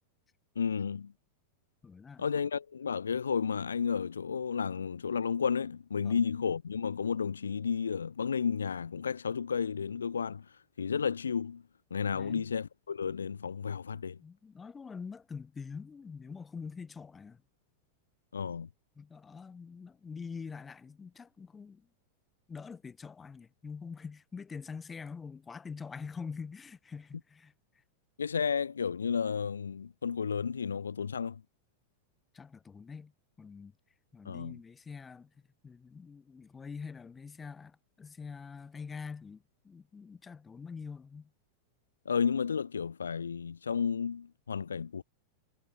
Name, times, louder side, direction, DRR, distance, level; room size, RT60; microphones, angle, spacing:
voice 1, 0.6-1.1 2.2-10.4 10.8-11.6 11.9-14.2 18.3-18.7 28.2-31.4 34.3-34.6 42.1-45.0, left 6 dB, 70° left, 0.5 m, -32 dB
voice 2, 1.8-2.3 6.0-6.1 12.1-12.5 14.2-17.4 19.0-21.9 22.5-27.5 32.3-33.1 33.4-33.7 34.1-35.3 35.6-41.3, left 5 dB, 15° left, 3.5 m, -45 dB
figure-of-eight pair, 90°, 0 cm